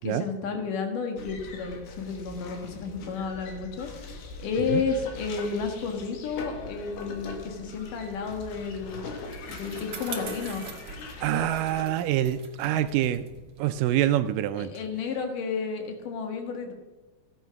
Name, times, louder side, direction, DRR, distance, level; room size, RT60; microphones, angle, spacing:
voice 1, 0.0-9.0 9.5-10.7 14.6-16.7, left 5 dB, 65° left, 4 dB, 3.1 m, -32 dB
sound 1, 1.2-11.8, left 3 dB, 80° left, 3.5 m, -41 dB
Bicycle, 8.3-15.0, right 6 dB, 50° right, 2.2 m, -44 dB
voice 2, 11.2-13.2 13.6-14.7, right 12 dB, 80° right, 11 dB, 2.0 m, -25 dB
15.5 x 9.1 x 5.8 m, 1.2 s
omnidirectional pair, 4.3 m